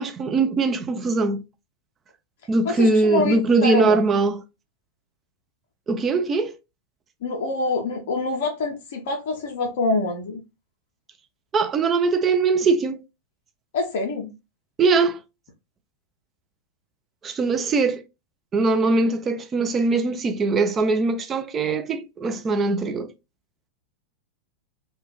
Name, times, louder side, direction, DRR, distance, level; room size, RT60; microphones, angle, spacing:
voice 1, 0.0-1.4 2.5-4.4 5.9-6.5 11.5-13.0 14.8-15.2 17.2-18.0 18.5-23.1, right 3 dB, 25° right, 0.4 m, -21 dB
voice 2, 2.6-4.0 7.2-10.4 13.7-14.3, left 3 dB, 55° left, 0.5 m, -25 dB
2.3 x 2.2 x 3.0 m
figure-of-eight pair, 90°, 0 cm